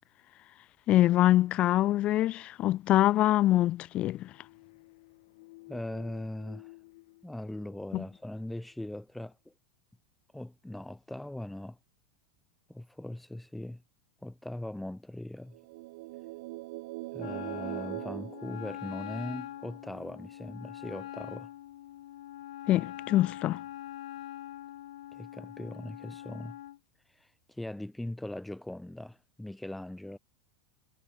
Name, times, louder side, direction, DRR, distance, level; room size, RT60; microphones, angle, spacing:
voice 1, 0.9-4.3 7.9-8.0 22.7-23.6, left 14 dB, 35° left, 0.4 m, -24 dB
sound 1, 4.2-8.8, left 23 dB, 65° left, 1.5 m, -54 dB
voice 2, 5.7-6.7 7.2-9.4 10.3-11.8 12.7-13.8 14.2-15.6 17.1-21.5 25.1-26.6 27.2-30.2, left 1 dB, 5° left, 2.6 m, -40 dB
sound 2, 15.5-19.4, right 21 dB, 65° right, 0.6 m, -41 dB
Wind instrument woodwind instrument, 17.2-26.8, left 13 dB, 85° left, 2.3 m, -43 dB
supercardioid pair, 130°, 3 cm